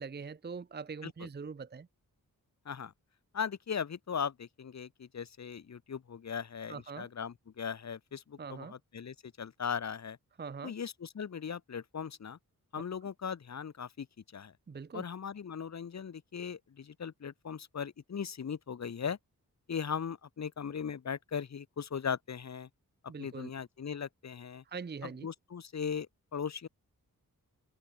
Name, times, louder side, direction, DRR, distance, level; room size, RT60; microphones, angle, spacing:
voice 1, 0.0-1.9 6.7-7.1 8.4-8.7 10.4-10.7 14.7-15.0 23.1-23.5 24.7-25.3, right 5 dB, 30° right, 0.6 m, -42 dB
voice 2, 3.3-10.2 10.6-12.4 12.7-14.1 14.3-14.5 14.9-19.2 19.7-22.7 23.0-24.6 25.0-26.1 26.3-26.7, left 7 dB, 50° left, 0.9 m, -38 dB
wide cardioid pair, 140°, 36 cm